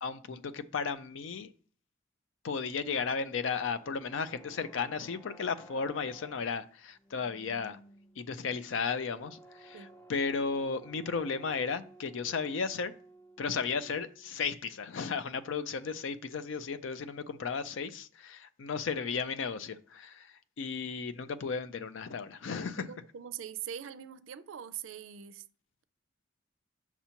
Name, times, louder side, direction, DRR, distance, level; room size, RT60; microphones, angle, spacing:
voice 1, 0.0-1.5 2.4-7.8 8.2-12.9 13.4-22.9, left 5 dB, 70° left, 0.4 m, -34 dB
sound 1, 3.2-14.4, right 2 dB, 10° left, 0.5 m, -56 dB
voice 2, 22.8-25.4, right 9 dB, 75° right, 0.4 m, -42 dB
5.9 x 2.9 x 5.6 m
head